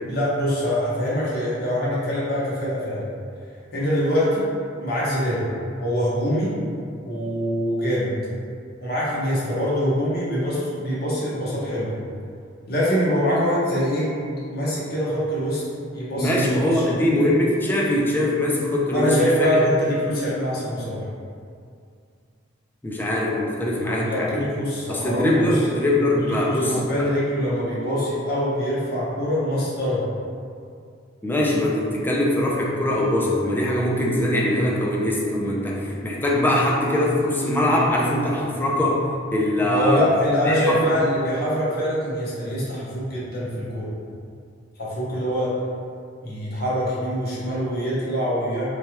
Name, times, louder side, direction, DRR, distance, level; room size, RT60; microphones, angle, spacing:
voice 1, 0.1-3.1 3.7-4.5 4.8-5.5 5.8-6.6 7.0-8.1 8.8-11.9 12.7-14.1 14.5-15.6 15.9-17.1 18.9-21.0 23.8-25.6 26.2-30.1 39.7-43.9 44.8-45.6 46.2-48.7, equal, 55° left, -8 dB, 0.9 m, -24 dB
voice 2, 16.2-19.6 20.0-20.2 22.8-24.4 24.9-27.1 31.2-39.0 39.3-40.0 40.5-40.8, left 1 dB, 10° left, -4 dB, 0.4 m, -22 dB
3.1 x 2.2 x 2.9 m, 2.3 s
head